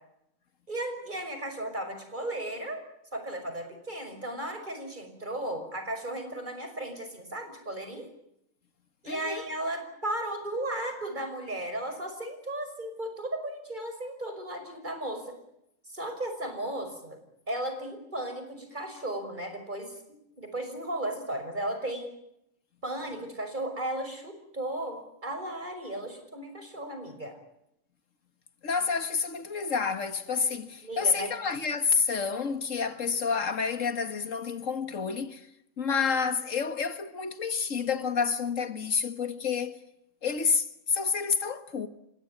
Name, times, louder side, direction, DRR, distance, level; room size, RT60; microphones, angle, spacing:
voice 1, 0.7-2.8 3.1-8.1 9.0-15.4 15.9-17.2 17.5-20.0 20.4-22.1 22.8-27.4 30.8-31.4, right 1 dB, 40° right, 6.1 m, -35 dB
voice 2, 9.1-9.4 28.6-35.5 35.8-39.8 40.2-41.9, left 5 dB, 90° left, 2.1 m, -29 dB
30.0 x 17.0 x 9.7 m
omnidirectional pair, 1.3 m